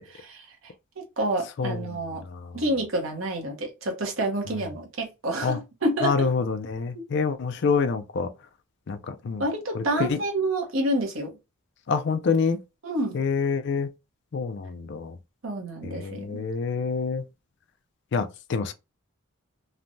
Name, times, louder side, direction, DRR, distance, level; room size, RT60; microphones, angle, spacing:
voice 1, 0.1-0.5 1.0-2.2 2.5-6.3 6.9-7.0 9.4-11.3 12.8-13.2 15.4-16.4, right 1 dB, 70° right, 0.9 m, -28 dB
voice 2, 6.0-8.3 8.9-9.4 9.7-10.2 11.9-12.6 13.1-13.9 14.3-15.2 15.8-17.2 18.1-18.7, left 5 dB, 55° left, 0.4 m, -26 dB
3.2 x 2.1 x 2.5 m
head